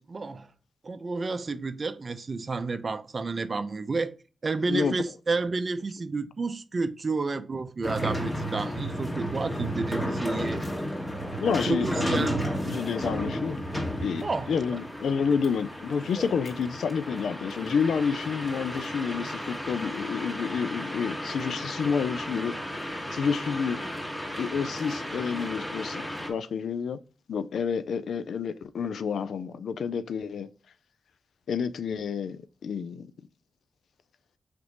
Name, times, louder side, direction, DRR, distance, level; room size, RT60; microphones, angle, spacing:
voice 1, 0.1-0.5 0.8-4.1 4.4-10.6 11.6-12.5 14.2-14.8, right 3 dB, 50° right, 0.5 m, -30 dB
sound 1, 7.8-26.3, equal, 25° left, 1.6 m, -33 dB
voice 2, 11.4-12.3 12.7-13.6 14.0-23.8 24.4-27.0 27.3-30.5 31.5-33.1, left 6 dB, 80° left, 0.3 m, -29 dB
5.1 x 3.0 x 2.9 m
cardioid pair, 45°, 0 cm